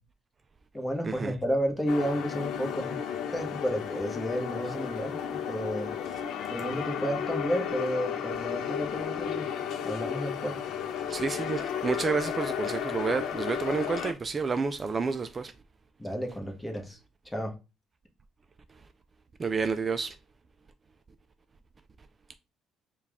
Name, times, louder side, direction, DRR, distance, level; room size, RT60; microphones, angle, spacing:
voice 1, 0.7-3.0 3.3-5.9 6.5-9.5 9.8-10.6 16.0-17.0 17.2-17.6, equal, 10° left, 1.1 m, -32 dB
sound 1, 1.9-14.1, left 8 dB, 70° left, 0.5 m, -33 dB
voice 2, 11.1-15.5 18.7-18.8 19.4-20.2, right 5 dB, 30° right, 0.3 m, -30 dB
4.5 x 2.3 x 3.5 m
cardioid pair, 90°, 0 cm